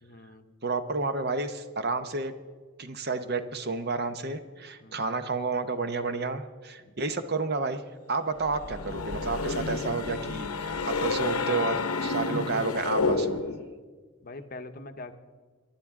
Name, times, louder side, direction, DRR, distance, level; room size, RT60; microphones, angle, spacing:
voice 1, 0.0-0.5 4.8-5.1 6.8-6.9 14.2-15.2, left 2 dB, 40° left, 8 dB, 0.8 m, -43 dB
voice 2, 0.6-2.3 2.8-7.8 8.1-13.4, right 3 dB, 45° right, 10 dB, 0.8 m, -30 dB
sound 1, 8.5-13.7, left 3 dB, 80° left, 0.8 m, -30 dB
23.5 x 11.5 x 3.6 m, 1.5 s
head